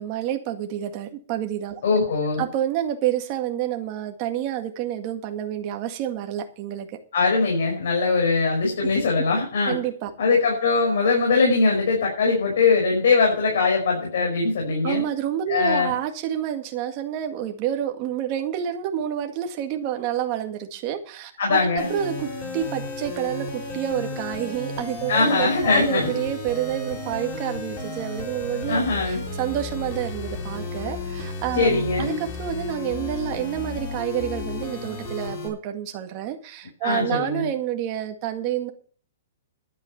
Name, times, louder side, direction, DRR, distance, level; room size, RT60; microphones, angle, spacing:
voice 1, 0.0-1.8 2.4-7.0 9.7-10.1 14.8-22.3 22.5-38.7, right 11 dB, 30° right, 4 dB, 1.9 m, -28 dB
voice 2, 1.8-2.4 7.1-9.8 10.2-15.0 15.5-16.0 21.4-21.9 25.1-26.2 28.7-29.2 31.5-32.2 36.8-37.5, left 4 dB, 65° left, 0 dB, 5.6 m, -21 dB
sound 1, 21.8-35.5, left 2 dB, 30° left, 4.0 m, -33 dB
11.5 x 8.8 x 6.7 m, 0.43 s
hypercardioid pair, 165°, 0 cm